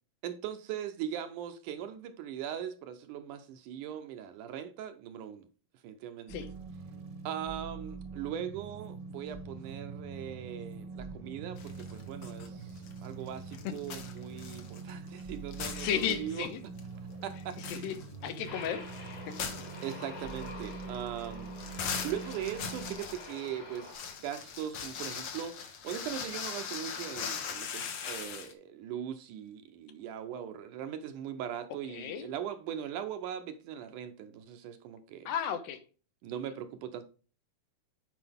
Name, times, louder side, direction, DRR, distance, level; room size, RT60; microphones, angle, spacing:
voice 1, 0.2-5.5 5.8-6.5 7.3-16.5 17.2-18.1 19.8-21.5 22.0-35.3 36.2-37.1, right 9 dB, 75° right, 2.1 m, -40 dB
sound 1, 6.3-23.0, right 4 dB, 55° right, 1.4 m, -44 dB
sound 2, 11.6-12.5 12.8-15.2 15.5-16.5 16.8-16.9 17.3-28.5, left 7 dB, 65° left, 1.4 m, -41 dB
voice 2, 15.8-16.6 17.7-18.0 18.2-18.9 19.3-19.4 31.9-32.3 35.3-35.8, left 8 dB, 85° left, 2.7 m, -34 dB
Aircraft, 18.5-23.9, left 3 dB, 35° left, 1.5 m, -47 dB
9.8 x 5.0 x 3.5 m
omnidirectional pair, 4.0 m